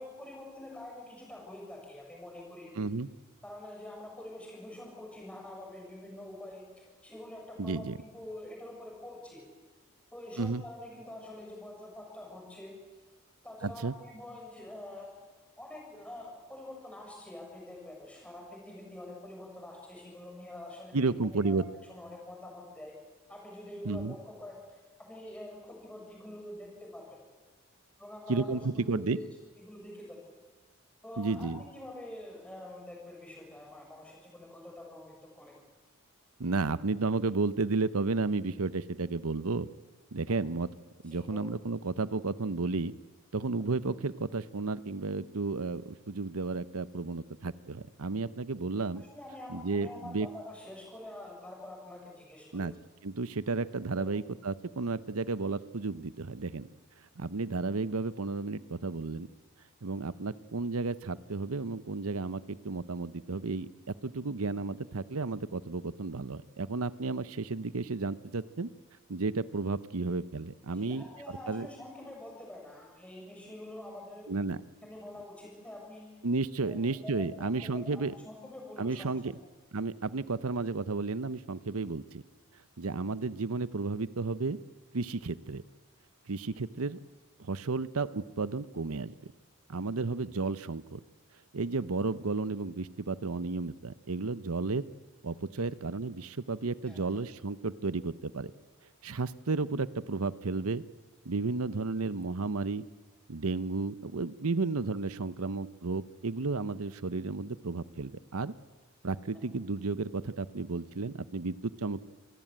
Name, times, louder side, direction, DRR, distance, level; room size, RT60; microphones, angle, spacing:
voice 1, 0.0-2.8 3.4-9.4 10.1-12.7 13.4-15.1 15.5-21.0 21.3-22.9 23.3-27.0 28.0-29.3 29.6-30.2 31.0-35.5 40.3-40.4 41.1-41.4 48.2-48.3 48.9-52.7 54.0-54.1 70.7-74.3 74.8-76.1 76.6-79.4 96.9-97.0, left 1 dB, 5° left, -1 dB, 7.3 m, -46 dB
voice 2, 2.8-3.1 7.6-8.0 10.4-10.6 13.6-13.9 20.9-21.6 23.8-24.1 28.3-29.2 31.2-31.6 36.4-39.7 40.1-40.7 41.0-42.9 43.3-49.0 49.5-50.3 52.5-52.7 53.0-56.7 57.2-59.3 59.8-68.7 69.1-71.0 71.5-71.7 74.3-74.6 76.2-78.1 78.8-79.3 79.7-82.2 82.8-84.6 84.9-85.6 86.3-87.0 87.4-89.2 89.7-91.0 91.5-94.8 95.2-98.5 99.0-100.8 101.2-102.8 103.3-108.5 109.0-112.0, right 3 dB, 80° right, 16 dB, 0.8 m, -32 dB
27.0 x 18.5 x 9.1 m, 1.3 s
head